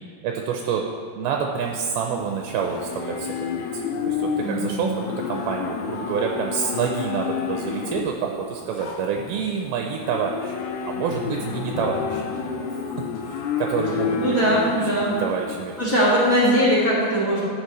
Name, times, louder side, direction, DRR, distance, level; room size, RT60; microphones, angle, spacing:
voice 1, 0.2-0.8 1.2-10.6 10.8-12.3 12.9-13.0 13.2-15.7, right 6 dB, 80° right, 2 dB, 2.3 m, -28 dB
Livestock farm animals working animals, 1.6-16.3, left 6 dB, 85° left, 2.7 m, -30 dB
voice 2, 4.4-5.0 14.1-15.2 15.8-17.4, equal, 35° left, -6 dB, 1.4 m, -21 dB
Drum, 11.1-13.1, equal, 55° left, 3.7 m, -35 dB
12.0 x 8.2 x 3.2 m, 2.6 s
omnidirectional pair, 4.8 m